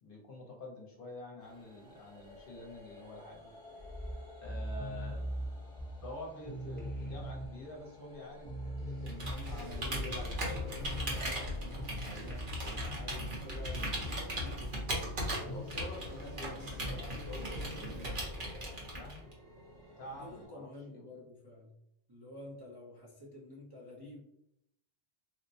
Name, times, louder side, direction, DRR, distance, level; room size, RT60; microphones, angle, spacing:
voice 1, 0.0-3.5 4.4-5.2 6.0-10.6 11.3-14.4 15.4-19.3 20.0-21.1, left 2 dB, 55° left, -1 dB, 0.8 m, -48 dB
sound 1, 1.4-20.5, equal, 85° right, 2.0 m, -55 dB
sound 2, 3.8-6.2 6.4-7.8 8.1-8.2 8.4-12.5 12.8-13.1 14.4-14.7 15.4-15.9 16.8-17.2, right 1 dB, 10° left, 0.8 m, -41 dB
Computer keyboard, 9.0-19.3, equal, 50° right, 1.0 m, -38 dB
voice 2, 20.0-21.7 22.1-24.2, left 2 dB, 25° right, -6 dB, 0.6 m, -50 dB
4.1 x 2.1 x 2.6 m, 0.78 s
omnidirectional pair, 1.1 m